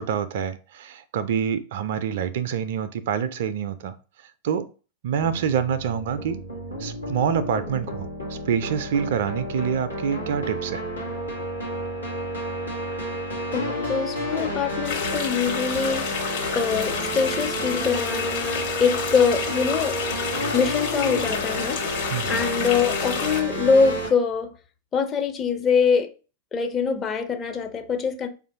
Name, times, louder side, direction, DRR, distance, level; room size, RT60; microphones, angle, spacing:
voice 1, 0.0-3.9 4.4-4.7 5.0-6.4 6.8-10.8 22.1-22.4, right 8 dB, 55° right, 0.3 m, -26 dB
sound 1, 5.1-24.1, equal, 90° left, 1.2 m, -31 dB
voice 2, 13.5-16.1 16.5-20.0 20.5-21.8 22.3-24.5 24.9-26.1 26.5-28.3, left 5 dB, 25° left, 0.5 m, -23 dB
sound 2, 14.8-23.4, left 6 dB, 55° left, 1.3 m, -30 dB
4.8 x 2.5 x 2.6 m
figure-of-eight pair, 90°, 0 cm